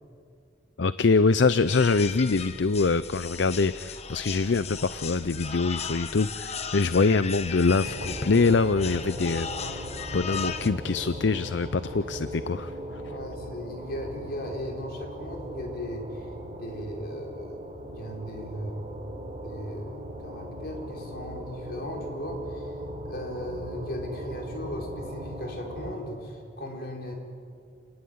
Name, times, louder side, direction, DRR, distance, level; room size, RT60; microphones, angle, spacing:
voice 1, 0.8-9.9 10.1-12.7, left 4 dB, 70° left, 14 dB, 0.6 m, -24 dB
sound 1, 1.7-10.7, left 6 dB, 35° left, 1.2 m, -37 dB
sound 2, 7.8-25.9, equal, 35° right, 4.3 m, -39 dB
voice 2, 13.1-17.6 18.0-18.9 19.4-22.7 23.0-27.2, equal, 55° left, 1 dB, 4.9 m, -37 dB
29.5 x 19.5 x 9.6 m, 2.4 s
head